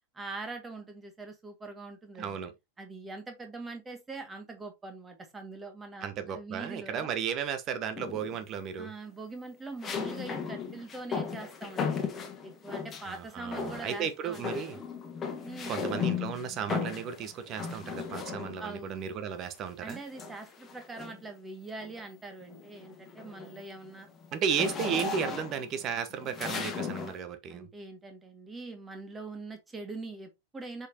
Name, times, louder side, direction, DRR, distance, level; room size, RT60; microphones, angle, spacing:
voice 1, 0.1-2.4 2.8-7.1 8.8-12.1 12.4-14.9 15.4-15.9 18.6-19.1 19.8-24.1 27.5-30.9, right 3 dB, 15° right, 2.0 m, -43 dB
voice 2, 2.2-2.5 6.0-8.9 13.0-14.8 15.7-20.0 24.3-27.7, right 7 dB, 35° right, 1.1 m, -34 dB
sound 1, 8.0-8.5 9.8-13.2 13.5-14.1 14.3-18.8 19.9-21.3 21.8-22.1 22.4-27.2, left 6 dB, 20° left, 1.7 m, -36 dB
6.3 x 5.5 x 2.9 m
figure-of-eight pair, 90°, 0 cm